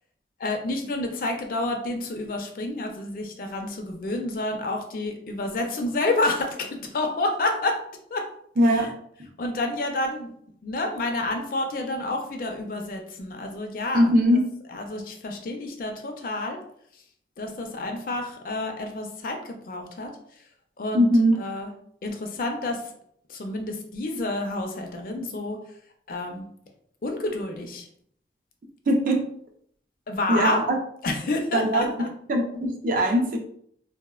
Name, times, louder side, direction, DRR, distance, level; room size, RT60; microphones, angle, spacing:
voice 1, 0.4-7.8 8.1-8.2 8.6-8.9 9.4-10.3 10.6-14.1 14.7-16.6 17.4-20.1 20.8-21.1 21.4-21.7 22.0-22.8 23.3-25.6 26.1-26.5 27.0-27.9 30.1-30.6 31.0-32.1, left 2 dB, 50° left, 4 dB, 0.4 m, -29 dB
voice 2, 8.6-8.9 13.9-14.4 20.9-21.4 28.9-29.2 30.3-30.8 31.5-31.9 32.3-33.4, equal, 45° right, 3 dB, 0.4 m, -20 dB
3.2 x 2.0 x 2.3 m, 0.66 s
head